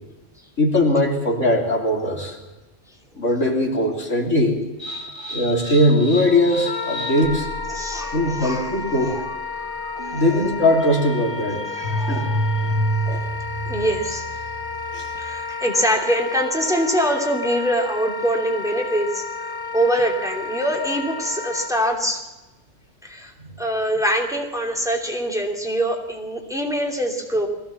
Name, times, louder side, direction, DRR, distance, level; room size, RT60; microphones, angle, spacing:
voice 1, 0.6-2.4 3.2-4.6 5.3-7.5 8.1-9.2 10.1-11.6 12.1-12.3 13.1-13.2 14.9-15.1 23.4-23.6, left 1 dB, 70° left, 1 dB, 3.6 m, -20 dB
sound 1, 4.8-15.4, right 1 dB, 20° right, 2.7 m, -30 dB
voice 2, 4.9-5.3 7.7-8.7 9.1-9.2 10.0-10.4 11.7-12.7 13.7-14.3 15.2-22.3 23.0-23.3 23.6-27.5, equal, ahead, 1 dB, 2.9 m, -24 dB
Wind instrument woodwind instrument, 6.6-21.7, left 3 dB, 20° left, 1.2 m, -32 dB
21.5 x 16.5 x 7.3 m, 1.1 s
omnidirectional pair, 1.3 m